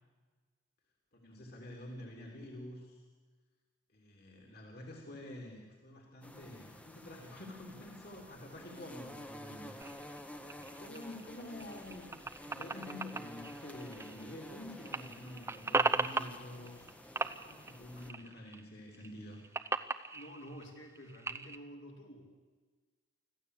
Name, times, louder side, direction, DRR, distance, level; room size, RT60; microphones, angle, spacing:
voice 1, 1.1-3.0 3.9-9.9 10.6-16.9 17.4-19.4, left 1 dB, 50° left, 1 dB, 3.4 m, -48 dB
sound 1, 6.2-18.1, left 1 dB, 5° left, 1.1 m, -51 dB
sound 2, 9.8-14.5 14.8-16.9 17.2-18.6 18.9-21.6, right 3 dB, 15° right, 0.7 m, -37 dB
voice 2, 20.1-22.2, equal, 70° left, 0 dB, 4.0 m, -50 dB
25.5 x 15.0 x 8.4 m, 1.4 s
head